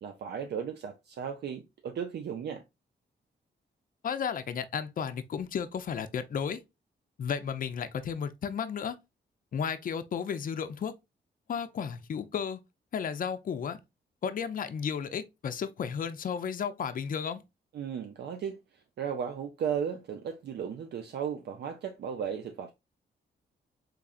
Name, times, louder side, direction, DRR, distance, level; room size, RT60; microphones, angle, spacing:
voice 1, 0.0-2.6 17.7-18.6 19.0-22.7, right 7 dB, 65° right, 0.4 m, -35 dB
voice 2, 4.0-6.6 7.2-9.0 9.5-10.9 11.5-12.6 12.9-13.8 14.2-17.4, left 7 dB, 50° left, 0.5 m, -33 dB
3.6 x 3.2 x 2.4 m
cardioid pair, 80°, 18 cm